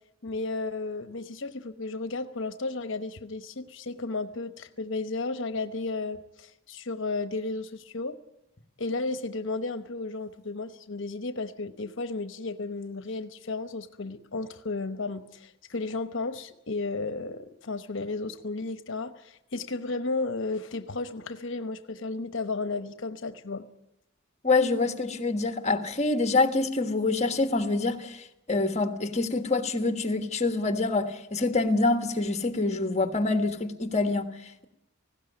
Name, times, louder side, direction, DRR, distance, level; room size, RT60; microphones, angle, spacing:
voice 1, 0.2-8.2 8.8-23.7, left 3 dB, 65° left, 1.0 m, -33 dB
voice 2, 24.4-34.7, left 3 dB, 35° left, 1.5 m, -26 dB
19.0 x 16.5 x 9.8 m
head